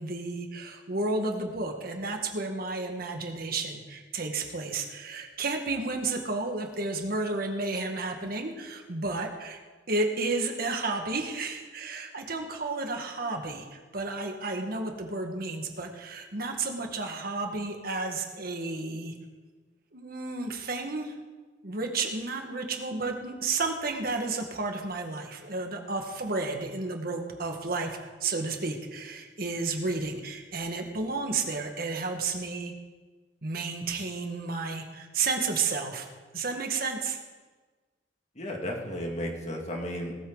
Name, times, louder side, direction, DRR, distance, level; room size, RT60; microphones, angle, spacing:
voice 1, 0.0-9.6 9.9-19.1 19.9-21.1 21.6-32.7 33.4-36.1 36.3-37.2, right 3 dB, 55° right, 3 dB, 1.7 m, -32 dB
voice 2, 38.4-40.1, equal, 40° left, 1 dB, 2.2 m, -34 dB
18.5 x 13.5 x 4.0 m, 1.3 s
head